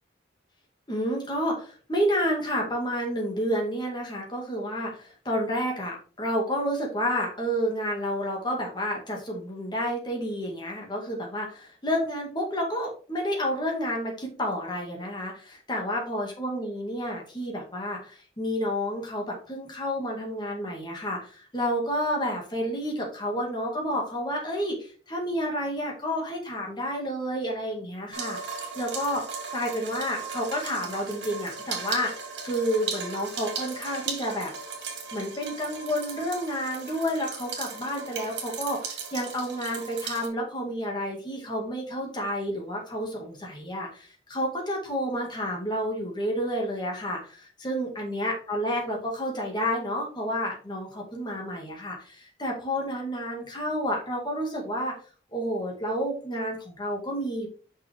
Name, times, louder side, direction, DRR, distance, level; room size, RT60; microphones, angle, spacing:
voice 1, 0.9-29.2 29.5-32.1 32.4-34.5 35.1-54.9 55.3-57.5, equal, 25° left, 0 dB, 2.3 m, -30 dB
sound 1, 28.1-40.3, right 5 dB, 85° right, 2.3 m, -37 dB
6.0 x 6.0 x 3.7 m, 0.39 s
head